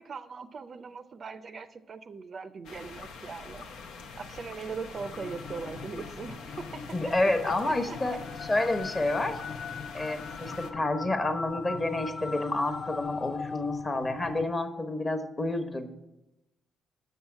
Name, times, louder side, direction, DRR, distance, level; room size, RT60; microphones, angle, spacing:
voice 1, 0.0-3.7 4.2-8.2, right 5 dB, 45° right, 0.5 m, -40 dB
sound 1, 2.6-10.7, left 4 dB, 85° left, 0.7 m, -45 dB
sound 2, 4.9-14.4, left 5 dB, 50° left, 0.5 m, -40 dB
voice 2, 6.9-9.4 9.9-15.9, left 2 dB, 25° left, 1.0 m, -29 dB
7.1 x 5.6 x 7.1 m
cardioid pair, 90°, 0 cm